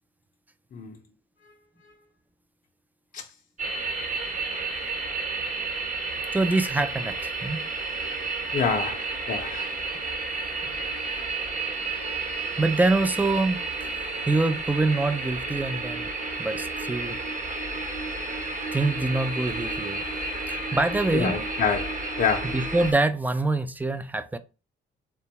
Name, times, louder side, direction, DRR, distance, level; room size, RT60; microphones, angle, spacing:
sound 1, 3.6-22.9, right 3 dB, 40° right, 1.0 m, -31 dB
voice 1, 6.3-7.6 12.6-16.1 16.4-17.2 18.7-20.0 20.5-21.4 22.5-24.4, right 2 dB, 10° right, 0.4 m, -25 dB
voice 2, 8.5-9.8 21.1-22.6, left 6 dB, 45° left, 0.6 m, -28 dB
3.5 x 2.2 x 2.8 m
cardioid pair, 90°, 20 cm